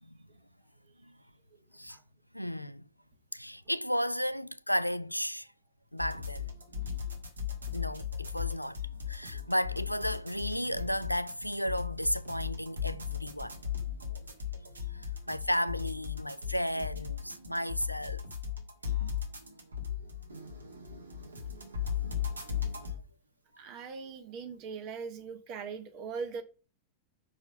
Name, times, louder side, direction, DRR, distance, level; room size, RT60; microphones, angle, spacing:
voice 1, 2.3-2.8 3.3-5.5 5.9-6.5 7.7-8.8 9.1-13.6 14.9-18.2, equal, 90° left, 0.4 m, -33 dB
sound 1, 6.0-23.0, left 8 dB, 75° right, 1.7 m, -37 dB
voice 2, 23.6-26.4, right 5 dB, 40° right, 1.3 m, -41 dB
6.0 x 4.7 x 6.4 m
figure-of-eight pair, 90°, 0 cm